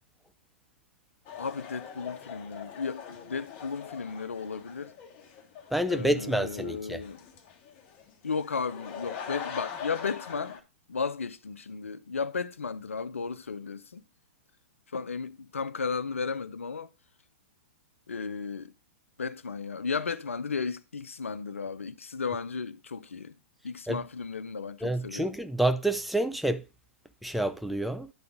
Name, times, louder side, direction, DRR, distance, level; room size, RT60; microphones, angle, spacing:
sound 1, 1.3-10.6, left 8 dB, 35° left, 1.5 m, -42 dB
voice 1, 1.4-4.9 5.9-7.2 8.2-10.6 10.9-14.0 14.9-16.9 18.1-18.7 19.2-23.3 23.6-25.3, left 5 dB, 90° left, 0.6 m, -34 dB
voice 2, 5.7-7.0 23.9-24.0 24.8-26.6 27.2-28.1, right 1 dB, ahead, 0.6 m, -28 dB
10.5 x 4.0 x 5.1 m
hypercardioid pair, 120°, 7 cm